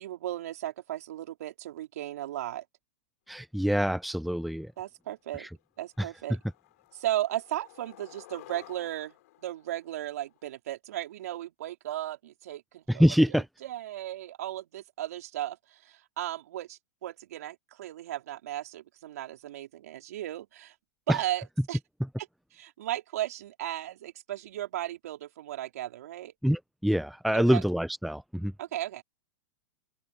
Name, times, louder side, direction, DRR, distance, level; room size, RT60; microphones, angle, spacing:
voice 1, 0.0-2.6 4.8-5.5 5.8-6.4 6.9-9.2 9.4-20.7 21.1-21.8 22.5-26.3 27.3-27.6 28.6-29.0, right 13 dB, 70° right, 4.4 m, -36 dB
voice 2, 3.3-4.7 5.4-5.5 6.0-6.1 12.9-13.4 21.1-21.2 26.4-28.5, equal, ahead, 0.7 m, -25 dB
Skateboard, 4.8-4.9 5.3-5.6 5.9-10.6, left 17 dB, 65° left, 4.7 m, -54 dB
open air
hypercardioid pair, 110°, 9 cm